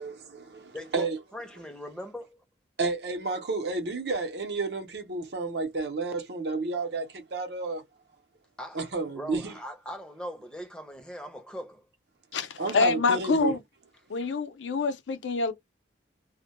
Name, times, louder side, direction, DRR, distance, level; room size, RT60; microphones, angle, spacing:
voice 1, 0.0-1.2 2.8-7.8 8.7-9.6 12.6-13.6, right 3 dB, 65° right, 0.6 m, -31 dB
voice 2, 0.7-1.1 1.3-2.4 8.6-8.8 9.1-11.8, equal, 5° left, 0.5 m, -40 dB
voice 3, 12.3-13.6 14.1-15.5, left 4 dB, 90° left, 0.5 m, -26 dB
2.1 x 2.1 x 2.8 m
head